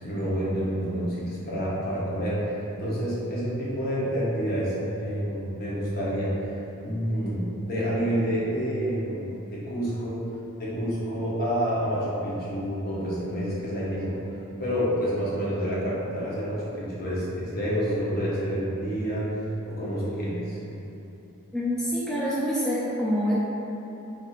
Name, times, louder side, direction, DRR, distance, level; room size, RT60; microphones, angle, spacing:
voice 1, 0.0-6.3 6.8-10.2 10.6-14.2 14.6-19.3 19.7-20.6, equal, 45° left, -8 dB, 0.8 m, -28 dB
voice 2, 21.5-23.3, equal, 5° left, -9 dB, 0.3 m, -26 dB
4.2 x 2.6 x 2.4 m, 2.9 s
head